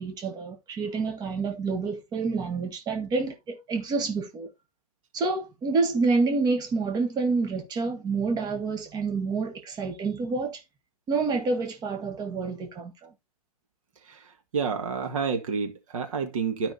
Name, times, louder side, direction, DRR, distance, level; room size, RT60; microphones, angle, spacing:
voice 1, 0.0-4.5 5.1-10.6 11.1-13.1, right 4 dB, 20° right, 1.5 m, -28 dB
voice 2, 14.5-16.7, right 5 dB, 55° right, 1.9 m, -29 dB
12.5 x 5.5 x 2.8 m
figure-of-eight pair, 110°, 20 cm